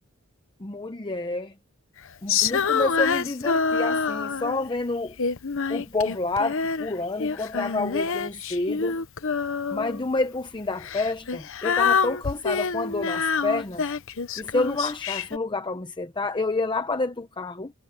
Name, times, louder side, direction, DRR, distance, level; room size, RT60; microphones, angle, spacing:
voice 1, 0.6-1.5 2.2-5.2 5.7-9.0 9.7-13.9 14.4-17.7, left 3 dB, 20° left, 0.8 m, -29 dB
Female singing, 2.3-4.7 5.2-6.9 7.2-10.0 10.8-15.4, left 5 dB, 65° left, 0.9 m, -26 dB
head